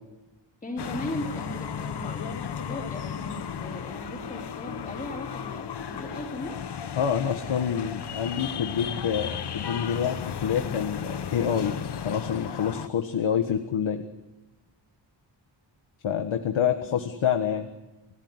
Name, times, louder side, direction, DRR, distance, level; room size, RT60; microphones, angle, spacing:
voice 1, 0.6-6.6 16.8-17.0, left 1 dB, 15° left, -5 dB, 4.3 m, -37 dB
sound 1, 0.8-12.9, left 8 dB, 60° left, 1.3 m, -35 dB
voice 2, 7.0-11.7 12.0-14.0 16.0-17.7, left 8 dB, 85° left, 6 dB, 1.7 m, -27 dB
29.0 x 16.5 x 9.8 m, 1.1 s
wide cardioid pair, 165°, 46 cm